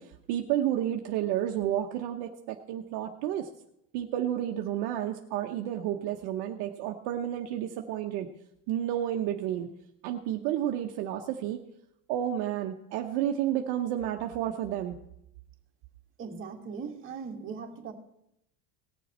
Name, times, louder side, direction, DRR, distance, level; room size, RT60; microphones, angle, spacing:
voice 1, 0.0-3.5 3.9-8.3 8.7-9.7 10.0-11.6 12.1-15.0, right 11 dB, 55° right, 3 dB, 1.0 m, -31 dB
voice 2, 16.2-17.9, right 5 dB, 25° right, 0 dB, 1.9 m, -39 dB
18.5 x 6.9 x 4.3 m, 0.77 s
supercardioid pair, 140°, 46 cm